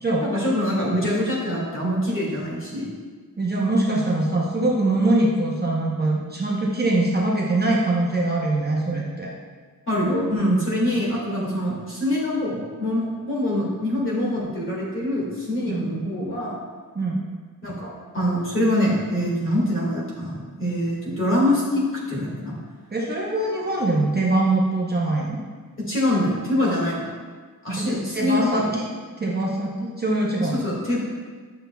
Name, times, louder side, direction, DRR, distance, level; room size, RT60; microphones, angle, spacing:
voice 1, 0.0-2.9 9.9-16.6 17.6-22.6 25.8-27.1 27.6-28.6 30.4-31.0, left 1 dB, 35° left, -5 dB, 2.0 m, -24 dB
voice 2, 3.4-9.3 15.7-15.8 16.9-17.2 22.9-25.4 27.8-28.9 29.2-30.7, right 2 dB, 25° right, -4 dB, 0.8 m, -23 dB
9.5 x 6.8 x 2.3 m, 1.5 s
wide cardioid pair, 170°, 36 cm